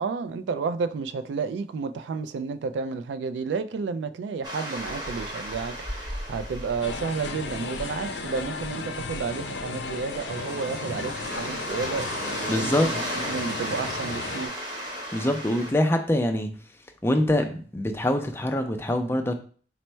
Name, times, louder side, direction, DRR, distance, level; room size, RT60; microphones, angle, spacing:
voice 1, 0.0-14.5, right 5 dB, 85° right, 0.3 m, -31 dB
sound 1, 4.4-15.7, equal, 25° right, 0.9 m, -35 dB
sound 2, 6.8-14.5, left 4 dB, 80° left, 0.4 m, -35 dB
voice 2, 12.5-12.9 15.1-16.6 17.0-19.3, left 1 dB, 15° left, 0.4 m, -24 dB
4.3 x 2.0 x 4.3 m
head